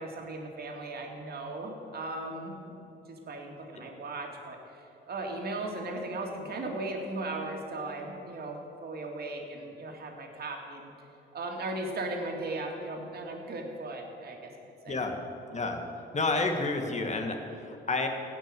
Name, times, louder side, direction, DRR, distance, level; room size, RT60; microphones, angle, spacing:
voice 1, 0.0-2.8 3.1-4.6 5.1-10.9 11.3-14.5 14.8-15.0, right 2 dB, 50° right, 2 dB, 2.5 m, -37 dB
voice 2, 14.9-15.2 15.5-15.8 16.1-18.1, left 3 dB, 35° left, 4 dB, 1.9 m, -30 dB
16.5 x 6.4 x 9.0 m, 2.8 s
cardioid pair, 90°, 20 cm